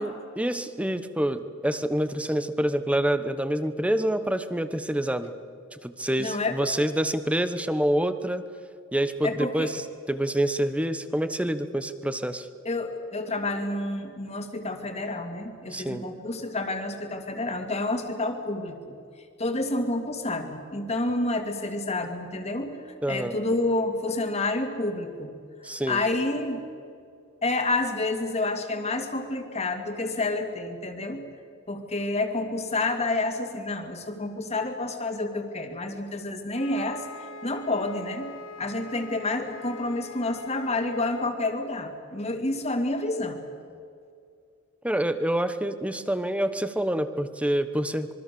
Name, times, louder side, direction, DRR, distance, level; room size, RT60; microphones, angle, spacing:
voice 1, 0.0-5.3 5.8-8.4 8.9-9.8 10.1-12.5 15.7-16.0 23.0-23.4 25.6-26.0 44.8-48.1, right 1 dB, 5° right, 11 dB, 1.0 m, -27 dB
voice 2, 6.2-6.6 9.2-9.8 12.6-18.9 19.4-25.3 25.9-26.7 27.4-31.2 31.7-37.1 37.4-43.4, left 2 dB, 30° left, 5 dB, 2.5 m, -29 dB
Wind instrument woodwind instrument, 36.5-41.3, left 3 dB, 80° left, 2.1 m, -44 dB
26.0 x 23.0 x 7.0 m, 2.3 s
head